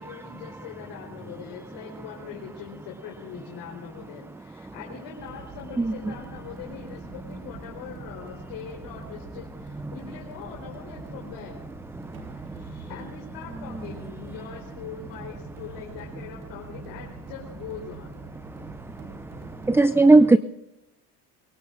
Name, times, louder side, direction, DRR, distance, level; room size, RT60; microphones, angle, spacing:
voice 1, 0.0-11.6 12.3-18.2, left 7 dB, 75° left, -2 dB, 4.2 m, -42 dB
sound 1, 5.2-19.8, right 4 dB, 80° right, 4.7 m, -46 dB
voice 2, 12.0-12.6 19.0-19.3 19.6-20.4, right 3 dB, 5° right, 13 dB, 0.5 m, -18 dB
23.0 x 22.0 x 2.6 m, 0.92 s
supercardioid pair, 90°, 40 cm